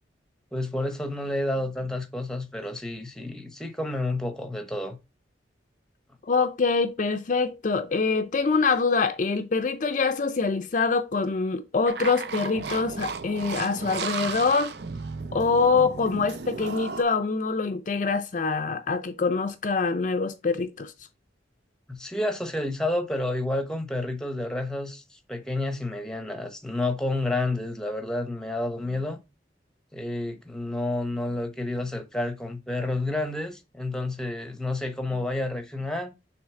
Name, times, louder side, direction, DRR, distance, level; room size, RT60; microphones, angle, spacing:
voice 1, 0.5-5.0 21.9-29.2 29.9-36.1, left 2 dB, 5° left, 0.8 m, -30 dB
voice 2, 6.3-14.7 15.3-20.9, left 4 dB, 45° left, 0.5 m, -25 dB
sound 1, 11.9-17.0, right 5 dB, 60° right, 0.5 m, -34 dB
6.3 x 3.2 x 4.7 m
head